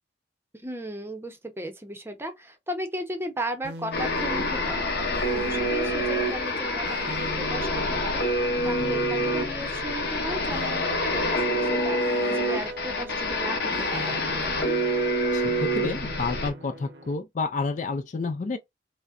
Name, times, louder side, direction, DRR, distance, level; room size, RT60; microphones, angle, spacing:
voice 1, 0.6-14.8, right 1 dB, 15° right, 0.7 m, -36 dB
sound 1, 3.6-17.1, right 1 dB, 65° right, 0.8 m, -40 dB
sound 2, 3.9-16.5, equal, 60° left, 1.0 m, -27 dB
voice 2, 15.3-18.6, left 3 dB, 45° left, 0.4 m, -30 dB
5.1 x 2.1 x 2.4 m
head